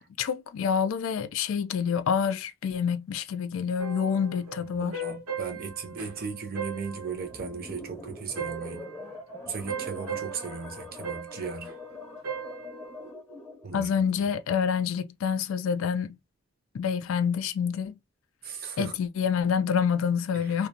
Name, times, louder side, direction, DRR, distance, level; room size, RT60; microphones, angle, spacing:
voice 1, 0.2-5.0 13.7-16.2 16.7-17.9 18.8-20.7, left 7 dB, 75° left, 0.3 m, -27 dB
sound 1, 3.8-7.9 8.3-13.1, right 5 dB, 80° right, 0.7 m, -38 dB
voice 2, 4.6-8.9 9.4-11.7 13.6-13.9 18.4-18.9 20.3-20.7, right 5 dB, 45° right, 0.6 m, -37 dB
sound 2, 7.3-13.7, left 2 dB, 10° left, 0.7 m, -44 dB
2.5 x 2.1 x 2.7 m
head